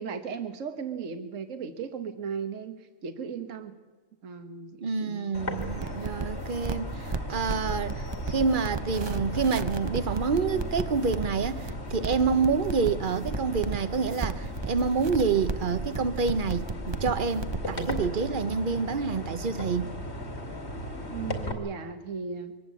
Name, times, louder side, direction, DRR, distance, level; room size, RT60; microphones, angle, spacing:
voice 1, 0.0-3.8 4.2-5.4 5.6-6.0 21.1-22.5, right 6 dB, 70° right, 1.6 m, -37 dB
voice 2, 4.8-19.9, right 5 dB, 40° right, 1.0 m, -28 dB
sound 1, 5.3-21.5, left 1 dB, 55° left, 2.9 m, -37 dB
sound 2, 5.6-18.1, right 3 dB, 25° right, 0.6 m, -34 dB
23.5 x 18.5 x 8.4 m
omnidirectional pair, 1.4 m